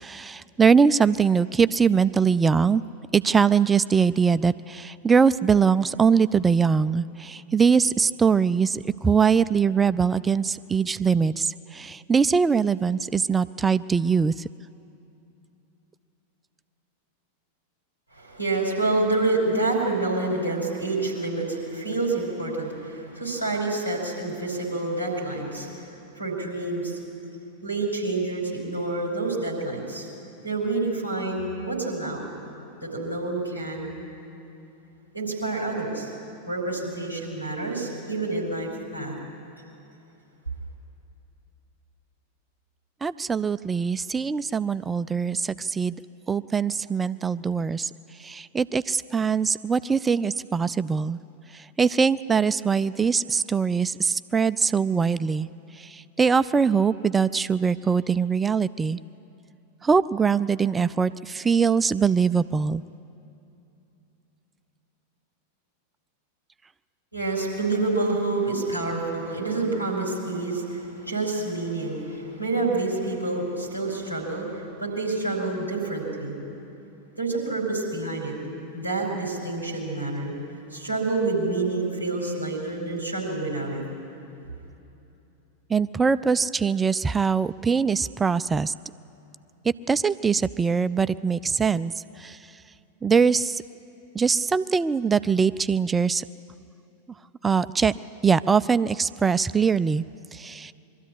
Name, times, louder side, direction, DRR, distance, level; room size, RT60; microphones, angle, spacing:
voice 1, 0.0-2.8 3.1-14.3 43.0-46.0 46.3-47.9 48.2-51.2 51.5-55.5 55.8-59.0 59.8-62.8 85.7-88.7 89.9-91.9 92.2-92.4 93.0-93.6 94.1-96.2 97.4-97.9 98.2-100.0 100.3-100.7, right 5 dB, 15° right, 14 dB, 0.4 m, -22 dB
voice 2, 18.1-27.0 27.6-30.1 30.4-32.2 32.8-33.9 35.1-36.1 36.5-39.2 67.1-76.4 77.2-78.3 78.7-80.4 80.7-83.8, right 2 dB, 90° left, 0 dB, 5.2 m, -28 dB
22.5 x 13.5 x 10.0 m, 2.8 s
figure-of-eight pair, 90°, 0 cm